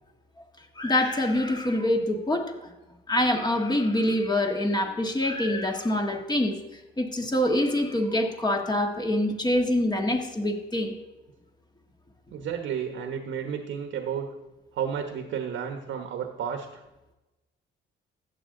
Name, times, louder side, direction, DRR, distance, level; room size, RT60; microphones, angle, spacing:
voice 1, 0.8-2.5 3.1-10.9, left 1 dB, 20° left, 3 dB, 1.6 m, -25 dB
voice 2, 12.3-14.3 14.7-16.8, right 8 dB, 75° right, 5 dB, 1.1 m, -32 dB
14.5 x 8.4 x 3.8 m, 1.0 s
cardioid pair, 90°, 20 cm